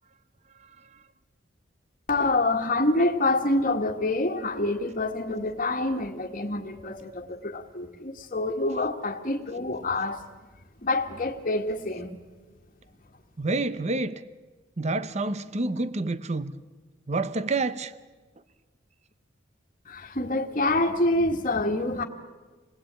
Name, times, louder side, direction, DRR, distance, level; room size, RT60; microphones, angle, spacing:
voice 1, 2.1-10.2 10.8-12.2 19.8-22.0, left 2 dB, 40° left, 1.6 m, -26 dB
voice 2, 13.4-14.2 14.8-16.5 17.1-17.9, right 3 dB, 35° right, 0.8 m, -28 dB
28.0 x 19.5 x 8.9 m
head